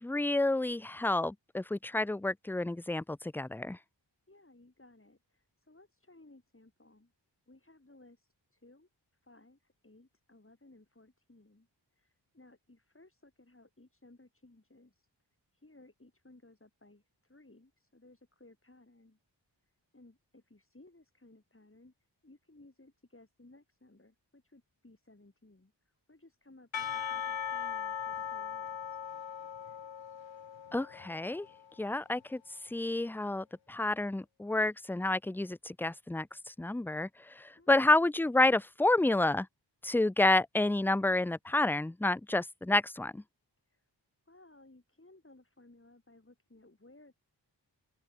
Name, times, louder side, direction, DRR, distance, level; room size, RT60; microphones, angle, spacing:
voice 1, 0.0-3.8 30.7-31.5 31.8-32.4 32.7-39.5 39.8-43.2, left 2 dB, 5° left, 0.4 m, -29 dB
voice 2, 4.3-7.1 7.5-8.9 9.2-15.1 15.5-19.2 19.9-21.9 22.2-29.0 37.5-38.0 43.7-43.9 44.3-47.1, left 2 dB, 30° left, 6.2 m, -60 dB
Percussion / Church bell, 26.7-31.8, left 8 dB, 85° left, 1.1 m, -39 dB
open air
cardioid pair, 45°, 45 cm